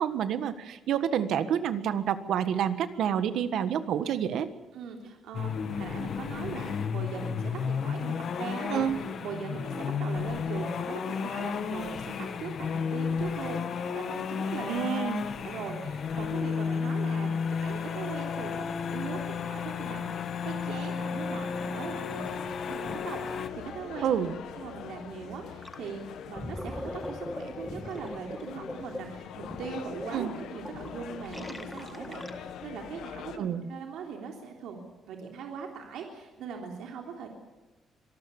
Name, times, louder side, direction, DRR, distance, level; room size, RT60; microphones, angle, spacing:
voice 1, 0.0-4.5 8.7-9.0 14.7-15.3 24.0-24.3 30.1-30.3 33.4-33.7, right 9 dB, 70° right, 11 dB, 1.5 m, -28 dB
voice 2, 4.7-8.9 9.2-14.8 15.1-24.1 24.6-37.3, right 6 dB, 90° right, 1 dB, 3.4 m, -40 dB
sound 1, 5.3-23.5, left 6 dB, 45° left, 1.4 m, -32 dB
sound 2, 22.2-33.4, left 9 dB, 80° left, 1.7 m, -43 dB
Gurgling, 25.6-25.9 26.2-32.7, left 1 dB, 5° left, 1.4 m, -41 dB
25.5 x 19.0 x 7.2 m, 1.2 s
cardioid pair, 170°, 0 cm